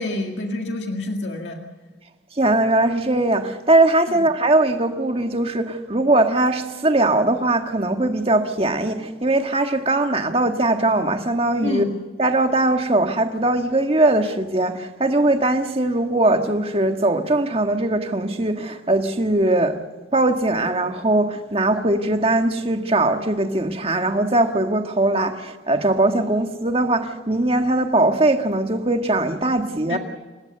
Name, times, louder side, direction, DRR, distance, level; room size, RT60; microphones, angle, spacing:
voice 1, 0.0-1.6 4.1-4.2 11.6-11.9 29.9-30.0, left 2 dB, 70° left, 2.0 m, -27 dB
voice 2, 2.4-11.9 12.2-19.8 20.1-30.0, right 2 dB, 30° right, 1.6 m, -20 dB
28.5 x 16.0 x 6.8 m
head